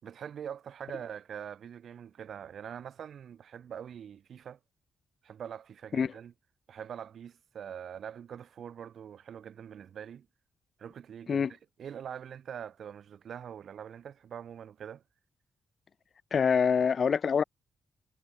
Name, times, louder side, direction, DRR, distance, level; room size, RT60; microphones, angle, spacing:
voice 1, 0.0-4.6 5.2-6.3 6.7-10.3 10.8-11.5 11.8-15.0, right 8 dB, 70° right, 5.7 m, -43 dB
voice 2, 16.3-17.4, left 6 dB, 55° left, 0.8 m, -25 dB
supercardioid pair, 50°, 0 cm